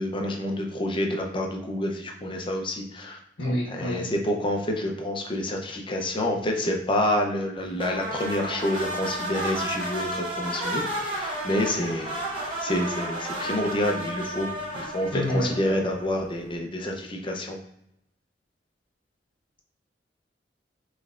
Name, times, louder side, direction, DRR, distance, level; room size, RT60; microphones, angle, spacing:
voice 1, 0.0-3.2 3.7-12.3 12.6-17.6, left 1 dB, 30° left, 2 dB, 0.6 m, -28 dB
voice 2, 3.4-4.0 15.1-15.5, equal, 75° left, -3 dB, 1.0 m, -27 dB
sound 1, 7.8-16.2, right 1 dB, 30° right, 1.3 m, -32 dB
5.3 x 3.2 x 2.4 m, 0.78 s
head